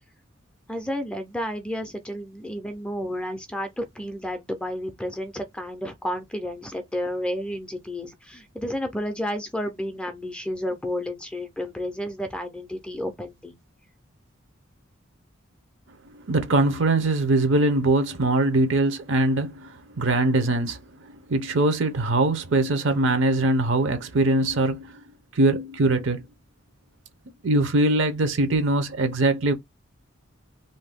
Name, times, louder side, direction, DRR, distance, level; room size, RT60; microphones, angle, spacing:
voice 1, 0.7-13.6, equal, 5° left, 0.4 m, -31 dB
voice 2, 16.3-24.9 25.3-26.2 27.4-29.5, right 2 dB, 65° right, 0.8 m, -22 dB
2.6 x 2.2 x 3.4 m
head